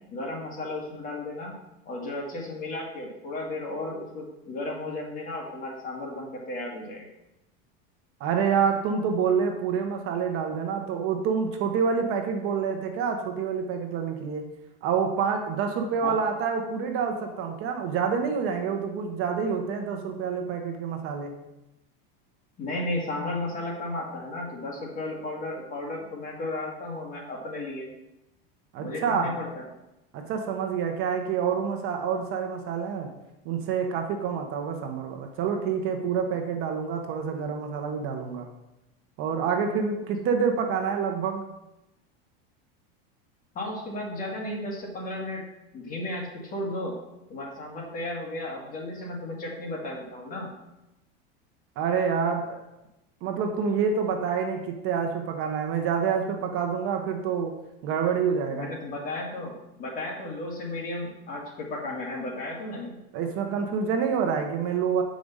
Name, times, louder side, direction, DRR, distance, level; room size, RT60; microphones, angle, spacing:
voice 1, 0.1-1.5 1.9-7.1 16.0-16.2 22.6-27.9 28.8-29.6 43.6-45.4 45.7-46.9 47.3-50.5 58.5-62.9, left 2 dB, 25° left, -1 dB, 1.9 m, -34 dB
voice 2, 8.2-14.4 14.8-21.3 28.7-29.3 30.1-33.1 33.4-38.5 39.2-41.4 51.8-52.6 53.2-57.5 57.8-58.7 63.1-65.0, right 6 dB, 45° right, 4 dB, 1.1 m, -27 dB
7.7 x 5.1 x 5.5 m, 0.92 s
supercardioid pair, 145°, 30 cm